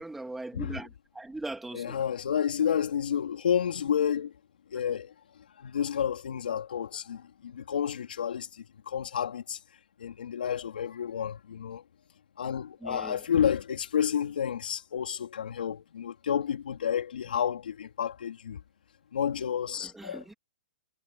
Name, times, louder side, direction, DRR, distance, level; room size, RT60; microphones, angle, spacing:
voice 1, 0.0-2.0 12.8-13.2 19.7-20.3, right 2 dB, 5° right, 3.0 m, -40 dB
voice 2, 1.7-4.3 4.7-5.1 5.6-9.6 10.0-11.8 12.4-18.6 19.1-20.4, left 8 dB, 80° left, 4.2 m, -30 dB
hypercardioid pair, 160°, 5 cm